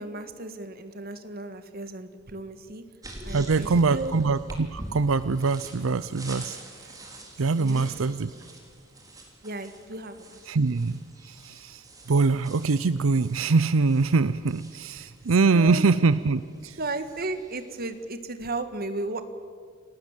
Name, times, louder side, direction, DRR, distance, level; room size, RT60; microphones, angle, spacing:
voice 1, 0.0-2.8 3.2-4.1 7.6-7.9 9.4-10.4 15.0-15.1 15.5-15.8 16.8-19.2, right 2 dB, 50° right, 10 dB, 1.7 m, -34 dB
sound 1, 3.0-18.1, right 1 dB, 20° right, 3.8 m, -45 dB
voice 2, 3.3-6.6 6.8-6.9 7.4-8.3 10.5-16.8, right 4 dB, 85° right, 15 dB, 0.6 m, -24 dB
29.0 x 18.5 x 7.4 m, 2.1 s
head